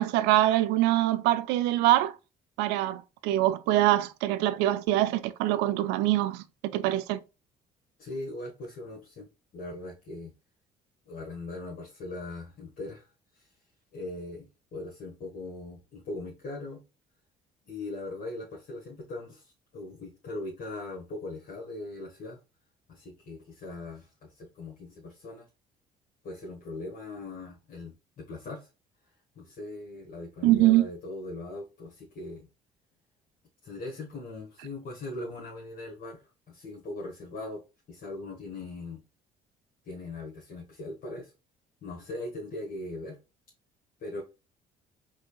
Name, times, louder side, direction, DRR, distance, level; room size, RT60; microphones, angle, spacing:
voice 1, 0.0-2.1 2.6-7.2 30.4-30.9, right 14 dB, 75° right, 0.4 m, -24 dB
voice 2, 8.0-10.3 11.1-13.1 13.3-13.5 13.9-16.8 17.7-22.4 22.9-25.5 26.2-28.7 29.3-32.5 33.6-36.2 36.5-37.6 37.9-39.0 39.8-41.3 41.8-43.2 44.0-44.2, left 2 dB, 55° left, 1.3 m, -40 dB
4.8 x 2.7 x 2.3 m
hypercardioid pair, 55°, 18 cm